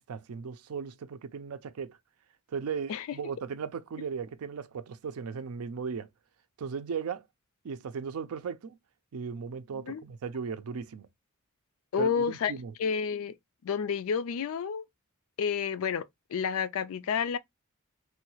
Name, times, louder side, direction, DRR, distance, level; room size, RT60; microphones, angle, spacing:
voice 1, 0.0-2.0 2.5-6.1 6.6-7.2 7.6-8.8 9.1-11.1 12.0-12.7, right 6 dB, 85° right, 0.4 m, -37 dB
voice 2, 9.7-10.0 11.9-12.5 12.8-13.4 13.6-14.8 15.4-17.4, left 6 dB, 70° left, 0.4 m, -30 dB
3.2 x 2.3 x 3.0 m
head